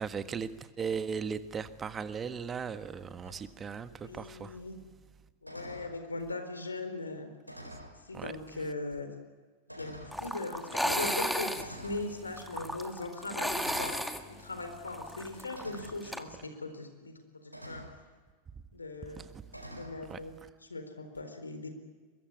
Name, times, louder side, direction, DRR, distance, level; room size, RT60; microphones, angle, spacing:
voice 1, 0.0-4.6 8.1-8.3 19.1-19.6 20.1-20.5, right 6 dB, 20° right, 1.5 m, -38 dB
sound 1, 3.2-3.4 5.4-5.9 7.4-8.0 8.8-8.9 9.7-10.2 11.6-12.1 13.5-14.0 15.5-16.0 17.5-18.0 19.5-20.0, equal, 90° right, 4.6 m, -46 dB
voice 2, 4.0-4.7 5.4-7.3 8.0-9.1 9.8-17.9 18.7-19.3 19.7-20.4 20.7-21.7, left 2 dB, 80° left, 4.1 m, -40 dB
sound 2, 10.1-16.2, equal, ahead, 1.8 m, -34 dB
23.5 x 22.5 x 9.7 m
figure-of-eight pair, 90°, 0 cm